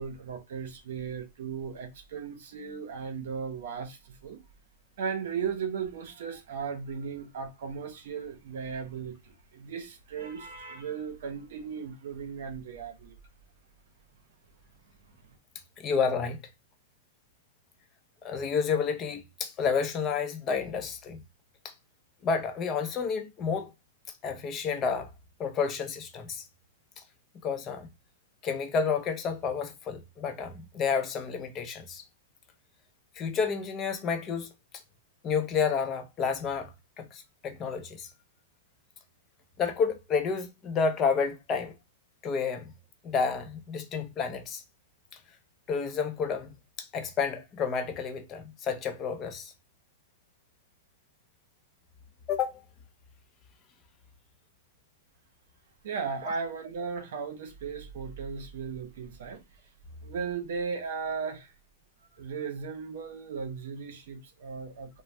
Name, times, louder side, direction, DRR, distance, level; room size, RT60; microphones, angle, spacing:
voice 1, 0.0-4.4 5.0-13.2 55.8-59.4 60.0-61.5 62.1-65.0, right 6 dB, 70° right, 0.7 m, -36 dB
voice 2, 15.8-16.4 18.2-21.2 21.6-21.7 22.2-23.7 24.2-25.1 25.4-26.4 27.4-27.9 28.4-32.0 33.2-34.5 35.2-38.1 39.6-41.7 42.2-42.7 43.0-44.6 45.7-49.5 52.3-52.6, left 5 dB, 25° left, 0.5 m, -30 dB
2.6 x 2.0 x 3.2 m
hypercardioid pair, 145°, 0 cm